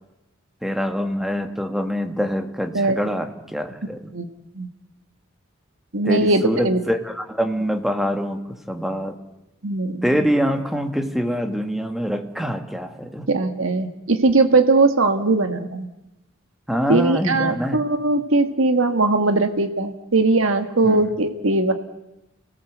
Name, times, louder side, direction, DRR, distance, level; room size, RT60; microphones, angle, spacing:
voice 1, 0.6-4.0 6.1-8.4 8.7-9.2 10.0-13.3 16.7-17.8 20.8-21.0, equal, ahead, 6 dB, 1.8 m, -24 dB
voice 2, 5.9-6.8 9.6-10.0 13.3-15.9 16.9-21.7, right 3 dB, 70° right, 7 dB, 1.7 m, -19 dB
29.5 x 18.5 x 8.1 m, 0.93 s
head